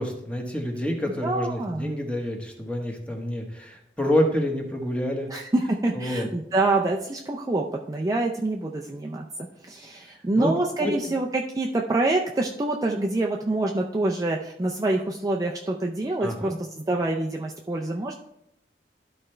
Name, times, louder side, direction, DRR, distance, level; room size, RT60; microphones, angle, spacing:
voice 1, 0.0-5.3 5.9-6.3 10.4-10.5 10.8-10.9 16.2-16.6, left 1 dB, 5° left, 1 dB, 1.1 m, -27 dB
voice 2, 1.2-1.9 5.3-9.3 9.6-18.2, right 2 dB, 20° right, 0 dB, 0.4 m, -26 dB
12.5 x 4.3 x 3.3 m, 0.77 s
head